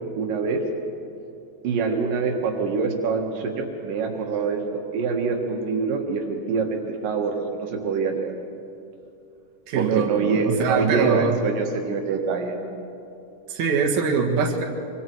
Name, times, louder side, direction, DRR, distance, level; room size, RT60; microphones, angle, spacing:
voice 1, 0.2-0.6 1.6-8.3 9.8-12.6, right 5 dB, 90° right, 2 dB, 3.3 m, -25 dB
voice 2, 9.7-11.4 13.5-14.6, right 5 dB, 65° right, 0 dB, 3.0 m, -22 dB
25.5 x 25.0 x 4.7 m, 2.6 s
omnidirectional pair, 3.7 m